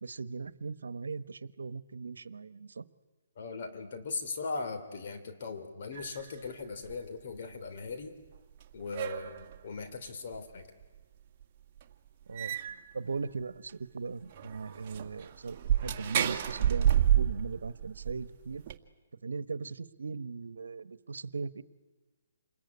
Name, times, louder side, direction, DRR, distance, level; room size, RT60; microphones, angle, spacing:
voice 1, 0.0-2.8 12.3-12.6 12.9-18.6 19.2-21.6, right 4 dB, 85° right, 15 dB, 1.2 m, -39 dB
voice 2, 3.3-8.2 8.7-10.7, left 4 dB, 55° left, 7 dB, 3.2 m, -39 dB
sound 1, 5.9-6.5 6.9-7.0 8.3-8.4 8.6-9.6 10.3-10.4 10.8-10.9 11.4-11.5 11.8-11.9 12.3-12.9 13.4-13.5 13.7-13.8 14.3-18.8, right 10 dB, 30° right, 1.9 m, -30 dB
28.0 x 21.5 x 9.8 m, 1.2 s
hypercardioid pair, 155°, 0 cm